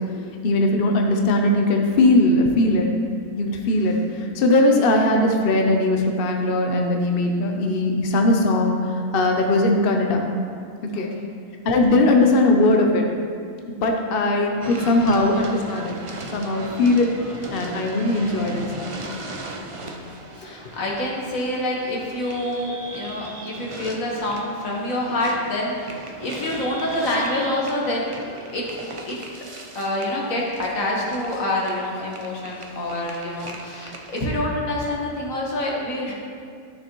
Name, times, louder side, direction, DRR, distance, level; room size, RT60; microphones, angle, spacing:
voice 1, 0.4-2.9 3.4-10.3 10.8-11.1 11.6-13.0 13.8-16.0 16.3-17.1 17.5-19.0, left 2 dB, 50° left, 2 dB, 0.8 m, -19 dB
sound 1, 14.6-34.3, right 2 dB, 40° right, 0.4 m, -38 dB
voice 2, 19.6-20.0 20.3-28.1 28.5-28.7 29.1-29.4 29.8-36.1, left 1 dB, 75° left, -3 dB, 1.9 m, -27 dB
12.5 x 6.6 x 3.1 m, 2.2 s
omnidirectional pair, 1.4 m